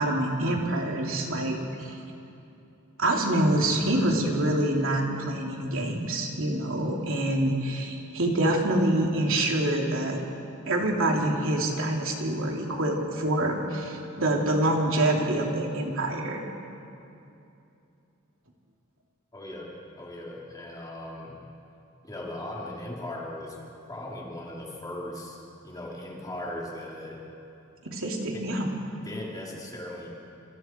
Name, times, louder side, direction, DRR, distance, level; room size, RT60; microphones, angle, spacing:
voice 1, 0.0-2.0 3.0-10.2 10.7-16.4 27.8-28.7, right 1 dB, 65° right, 0 dB, 3.3 m, -26 dB
voice 2, 19.3-21.4 22.0-23.6 23.9-25.4 25.6-27.2 28.3-28.5 29.0-30.1, left 1 dB, 20° left, -3 dB, 3.3 m, -38 dB
28.0 x 27.0 x 4.6 m, 2.8 s
head